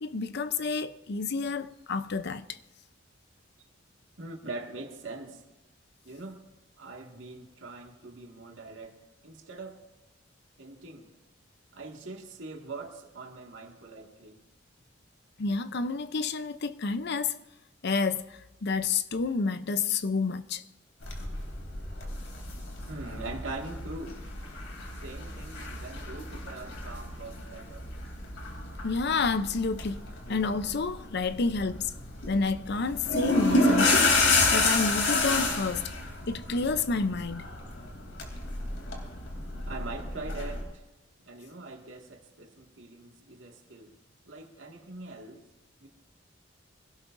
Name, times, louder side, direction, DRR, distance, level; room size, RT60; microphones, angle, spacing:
voice 1, 0.0-2.6 15.4-17.4 17.8-18.2 18.6-20.6 28.8-30.0 30.3-31.9 32.3-34.2 34.5-35.9 36.3-37.5, left 4 dB, 60° left, 0.6 m, -29 dB
voice 2, 4.2-5.4 6.0-6.4 6.8-9.0 9.2-9.8 10.6-11.2 11.7-14.4 22.9-24.3 25.0-27.9 39.7-40.8 41.2-44.0 44.3-45.5 45.8-45.9, right 3 dB, 85° right, 2.0 m, -42 dB
sound 1, 21.0-40.6, left 2 dB, 80° left, 3.1 m, -30 dB
24.5 x 16.5 x 2.6 m
head